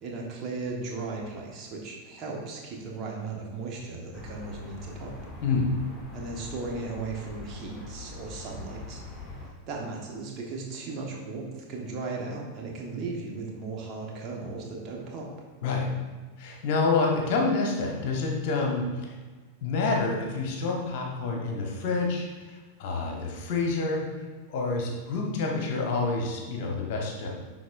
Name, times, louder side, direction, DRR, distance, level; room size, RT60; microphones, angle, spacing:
voice 1, 0.0-5.2 6.1-9.0 9.7-15.3, right 3 dB, 35° right, -1 dB, 1.3 m, -36 dB
sound 1, 4.1-9.5, left 3 dB, 15° left, 1.4 m, -43 dB
voice 2, 16.4-19.1 19.6-24.1 24.5-27.3, left 3 dB, 50° left, 0 dB, 1.1 m, -28 dB
10.5 x 4.0 x 2.6 m, 1.3 s
figure-of-eight pair, 90°, 0 cm